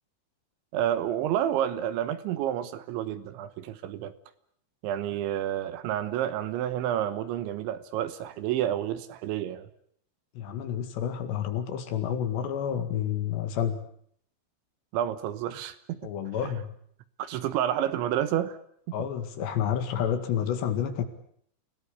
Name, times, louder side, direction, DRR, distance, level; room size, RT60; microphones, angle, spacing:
voice 1, 0.7-4.1 4.8-9.7 14.9-16.1 17.2-18.6, right 11 dB, 75° right, 13 dB, 3.4 m, -29 dB
voice 2, 10.4-13.8 16.0-16.7 18.9-21.0, left 9 dB, 65° left, 8 dB, 4.0 m, -29 dB
29.0 x 18.0 x 8.4 m, 0.65 s
omnidirectional pair, 5.6 m